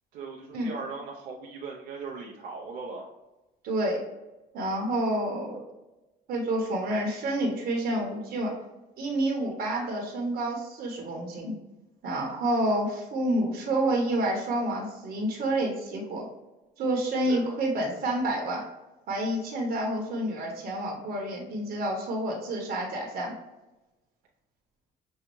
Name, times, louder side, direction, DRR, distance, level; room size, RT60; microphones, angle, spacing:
voice 1, 0.1-3.1 17.3-17.5, right 4 dB, 85° right, -3 dB, 0.7 m, -38 dB
voice 2, 3.6-4.0 4.5-5.6 6.3-8.5 9.0-11.6 12.0-16.3 16.8-18.6 19.1-23.3, right 1 dB, 65° right, 0 dB, 1.1 m, -29 dB
6.5 x 2.3 x 3.0 m, 1.0 s
cardioid pair, 110°, 17 cm